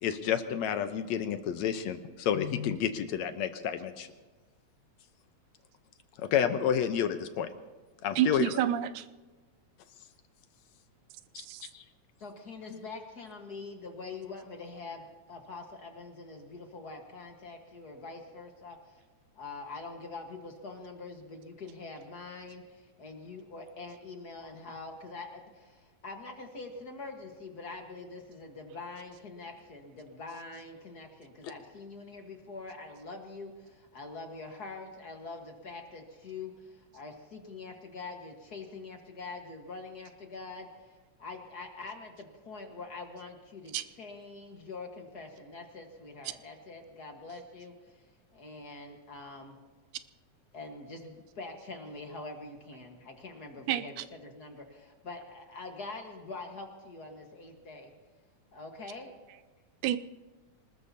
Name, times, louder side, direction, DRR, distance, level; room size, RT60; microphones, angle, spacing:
voice 1, 0.0-4.1 6.2-7.5 8.0-8.5 11.3-11.5 11.7-11.8, left 8 dB, 75° left, 2.1 m, -30 dB
voice 2, 8.2-9.1 11.4-11.6 43.7-43.8 53.7-54.1 59.8-60.0, right 11 dB, 90° right, 2.1 m, -29 dB
voice 3, 12.2-19.0 19.3-48.1 48.3-49.6 50.5-57.9 58.5-59.1, left 3 dB, 40° left, 1.6 m, -44 dB
25.0 x 20.0 x 2.8 m
omnidirectional pair, 3.3 m